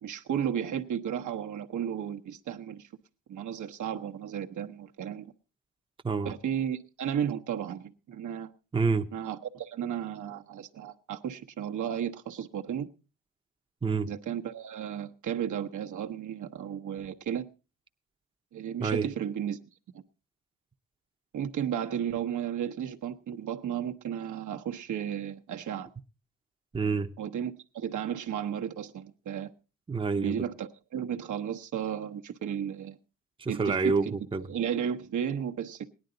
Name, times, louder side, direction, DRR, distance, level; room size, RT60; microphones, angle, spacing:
voice 1, 0.0-2.9 3.3-5.3 6.2-8.5 9.1-12.9 14.0-17.5 18.5-19.6 21.3-25.9 27.2-29.5 30.2-33.0 33.5-34.1 34.5-35.9, right 9 dB, 75° right, 1.1 m, -34 dB
voice 2, 8.7-9.1 13.8-14.1 18.8-19.1 26.7-27.1 29.9-30.5 33.4-34.5, right 4 dB, 15° right, 0.7 m, -28 dB
18.0 x 11.0 x 3.9 m
cardioid pair, 100°, 31 cm